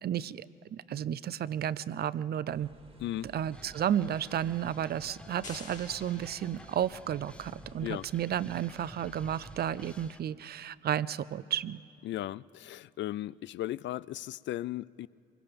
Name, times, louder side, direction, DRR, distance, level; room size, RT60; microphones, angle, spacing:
voice 1, 0.0-2.7 3.2-11.8, right 10 dB, 55° right, 18 dB, 0.5 m, -32 dB
sound 1, 2.5-10.1, right 3 dB, 30° right, 1.8 m, -55 dB
voice 2, 3.0-3.3 7.8-8.0 12.0-15.1, left 14 dB, 65° left, 20 dB, 0.4 m, -36 dB
sound 2, 3.5-10.2, left 1 dB, 5° left, 0.7 m, -53 dB
sound 3, 5.4-7.3, left 4 dB, 40° left, 2.2 m, -49 dB
24.0 x 21.0 x 5.2 m, 2.8 s
cardioid pair, 90°, 20 cm